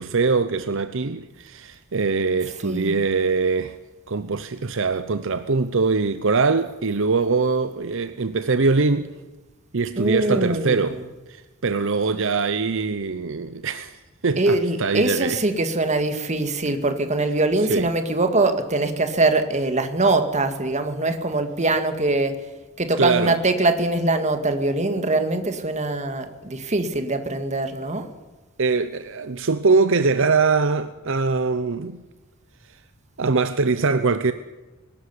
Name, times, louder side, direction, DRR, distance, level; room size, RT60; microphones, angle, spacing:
voice 1, 0.0-3.8 4.1-9.1 9.7-15.4 17.7-17.9 23.0-23.4 28.6-32.0 33.2-34.3, right 4 dB, 60° right, 0.8 m, -22 dB
voice 2, 2.6-2.9 10.0-11.0 14.4-22.3 22.8-28.1, right 2 dB, 35° right, 2.0 m, -22 dB
21.5 x 13.0 x 9.9 m
head